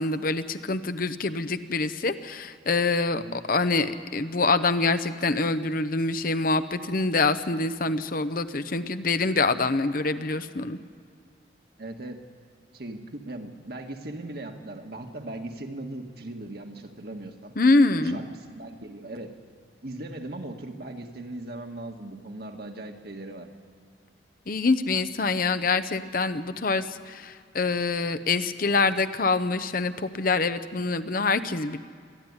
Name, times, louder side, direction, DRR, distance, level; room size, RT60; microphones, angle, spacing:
voice 1, 0.0-10.8 17.6-18.2 24.5-31.8, left 3 dB, 50° left, 11 dB, 0.8 m, -25 dB
voice 2, 11.8-12.2 12.7-17.5 18.0-19.3 19.8-23.5, right 1 dB, 55° right, 3 dB, 1.8 m, -38 dB
25.0 x 13.0 x 9.7 m, 2.2 s
head